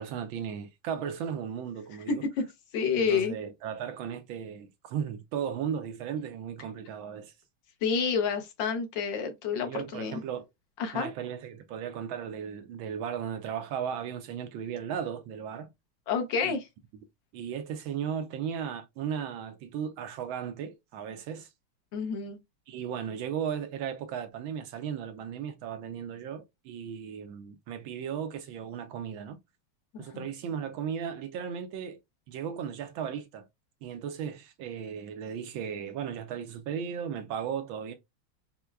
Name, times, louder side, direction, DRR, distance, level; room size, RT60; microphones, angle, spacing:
voice 1, 0.0-2.3 3.0-7.3 9.6-10.5 10.9-15.7 16.4-16.6 17.3-21.5 22.7-29.4 30.0-32.0 32.3-33.5 33.8-37.9, right 8 dB, 75° right, 1.3 m, -36 dB
voice 2, 2.1-2.4 2.7-3.3 7.8-10.2 10.8-11.1 16.1-16.6 21.9-22.4 29.9-30.3, left 6 dB, 65° left, 1.5 m, -29 dB
5.6 x 2.2 x 2.2 m
omnidirectional pair, 2.4 m